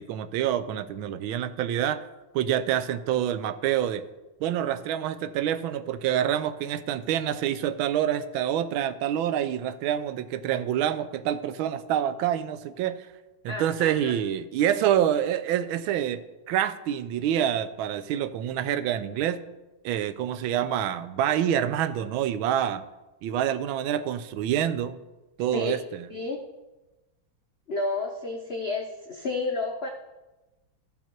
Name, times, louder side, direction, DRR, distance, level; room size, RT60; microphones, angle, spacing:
voice 1, 0.0-2.0 2.3-4.0 4.4-13.1 13.4-16.2 16.5-19.4 19.8-22.8 23.2-25.0 25.4-26.0, right 10 dB, 80° right, 13 dB, 1.4 m, -27 dB
voice 2, 13.5-14.1 25.5-25.8 26.1-26.4 27.7-29.9, left 3 dB, 85° left, 3 dB, 0.5 m, -31 dB
13.5 x 5.5 x 4.5 m, 1.1 s
omnidirectional pair, 2.2 m